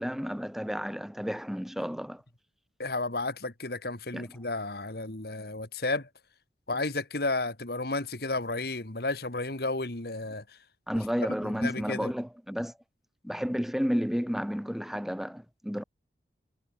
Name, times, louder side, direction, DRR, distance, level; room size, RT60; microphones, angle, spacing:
voice 1, 0.0-2.2 4.1-4.3 10.9-12.7 13.2-15.8, equal, ahead, 2.9 m, -31 dB
voice 2, 2.8-6.1 6.7-10.4 11.6-12.1, left 2 dB, 60° left, 2.3 m, -32 dB
head